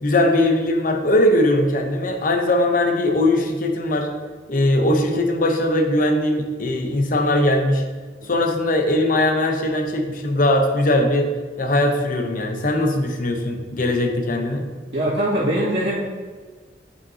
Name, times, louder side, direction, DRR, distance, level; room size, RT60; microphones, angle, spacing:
voice 1, 0.0-4.1 4.5-7.8 8.2-11.3 11.6-14.6, left 1 dB, 50° left, 4 dB, 0.8 m, -20 dB
voice 2, 14.9-16.0, right 1 dB, 80° right, -8 dB, 1.9 m, -22 dB
8.0 x 5.6 x 2.8 m, 1.5 s
head